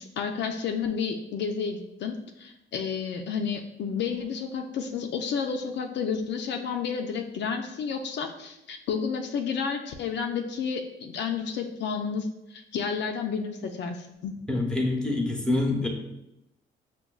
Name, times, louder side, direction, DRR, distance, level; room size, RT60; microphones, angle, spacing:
voice 1, 0.0-14.3, left 6 dB, 65° left, 4 dB, 0.4 m, -31 dB
voice 2, 14.5-15.9, left 2 dB, 5° left, 1 dB, 0.7 m, -26 dB
5.6 x 2.2 x 2.3 m, 0.85 s
cardioid pair, 90°, 20 cm